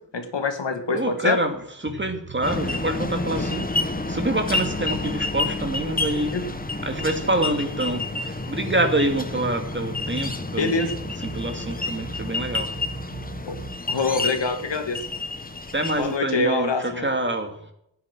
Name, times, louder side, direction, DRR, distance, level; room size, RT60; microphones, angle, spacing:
voice 1, 0.1-1.4 6.1-6.4 10.6-10.9 13.5-13.6 13.9-15.0 16.0-17.1, left 3 dB, 75° left, 6 dB, 2.4 m, -25 dB
voice 2, 0.9-6.3 6.8-10.9 11.2-12.7 15.7-17.6, right 1 dB, 25° right, 5 dB, 2.5 m, -26 dB
sound 1, 1.9-13.8, right 3 dB, 55° right, 2.4 m, -41 dB
sound 2, 2.4-16.2, left 2 dB, 20° left, 1.3 m, -29 dB
15.0 x 9.8 x 6.2 m, 0.73 s
wide cardioid pair, 115°, 43 cm